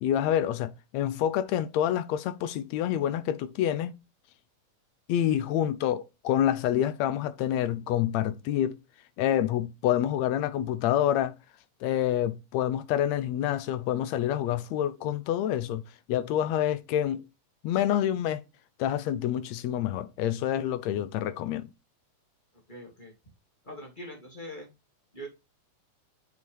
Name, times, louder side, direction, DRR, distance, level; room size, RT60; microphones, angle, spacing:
voice 1, 0.0-3.9 5.1-8.8 9.2-11.3 11.8-15.8 16.1-17.2 17.6-18.4 18.8-21.7, left 11 dB, 75° left, 1.7 m, -27 dB
voice 2, 22.7-23.1 23.6-24.7 25.1-25.3, equal, 15° left, 2.3 m, -42 dB
6.9 x 6.3 x 3.3 m
omnidirectional pair, 3.5 m